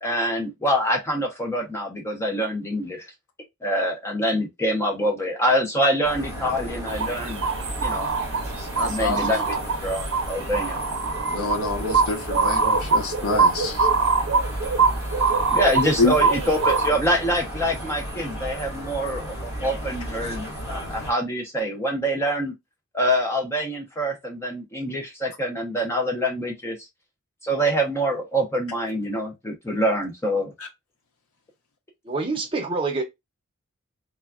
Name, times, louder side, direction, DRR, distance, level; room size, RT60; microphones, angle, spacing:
voice 1, 0.0-3.0 3.6-7.4 7.8-8.1 8.9-9.5 9.8-10.8 15.5-22.5 22.9-26.8 27.4-30.5, equal, 10° left, 0.4 m, -25 dB
sound 1, 6.0-21.1, equal, 30° left, 1.4 m, -33 dB
sound 2, 6.9-16.9, right 4 dB, 75° right, 0.7 m, -24 dB
voice 2, 8.8-9.4 11.3-13.9 16.0-16.1 30.6-30.7, left 3 dB, 90° left, 0.8 m, -26 dB
voice 3, 32.0-33.0, right 3 dB, 25° right, 0.6 m, -26 dB
3.3 x 2.2 x 2.3 m
head